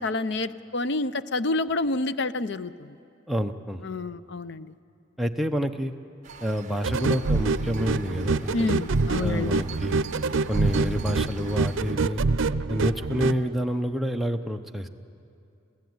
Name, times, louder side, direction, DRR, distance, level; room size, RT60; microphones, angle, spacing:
voice 1, 0.0-2.9 3.8-4.7 8.5-9.6, left 2 dB, 60° left, 14 dB, 0.6 m, -28 dB
voice 2, 3.3-3.8 5.2-5.9 6.4-8.7 9.2-10.0 10.5-12.2 12.7-14.9, equal, ahead, 3 dB, 0.8 m, -28 dB
sound 1, 6.2-11.9, right 4 dB, 40° right, 1.0 m, -43 dB
sound 2, 6.8-13.4, right 3 dB, 85° right, 0.6 m, -26 dB
27.0 x 16.0 x 9.5 m, 2.6 s
head